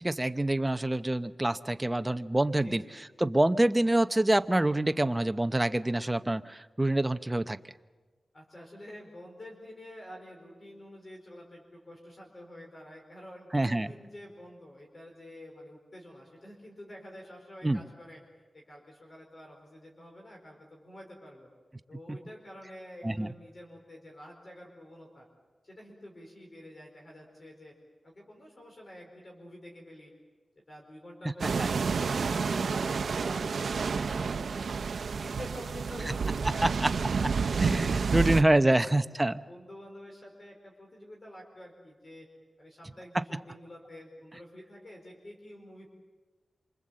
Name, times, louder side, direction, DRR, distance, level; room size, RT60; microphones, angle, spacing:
voice 1, 0.0-2.8 3.2-7.6 13.5-13.9 17.6-17.8 23.0-23.3 31.6-31.7 36.8-36.9 37.6-39.4, right 1 dB, 15° right, 10 dB, 0.7 m, -26 dB
voice 2, 2.6-3.0 8.3-18.2 18.5-21.5 21.9-25.3 25.6-27.7 28.0-30.1 30.7-34.8 35.2-37.6 38.0-38.9 39.5-42.3 42.6-45.9, left 1 dB, 40° left, 0 dB, 4.6 m, -48 dB
sound 1, 31.4-38.4, right 5 dB, 75° right, 0.7 m, -29 dB
26.5 x 25.0 x 7.6 m, 1.3 s
wide cardioid pair, 120°, 0 cm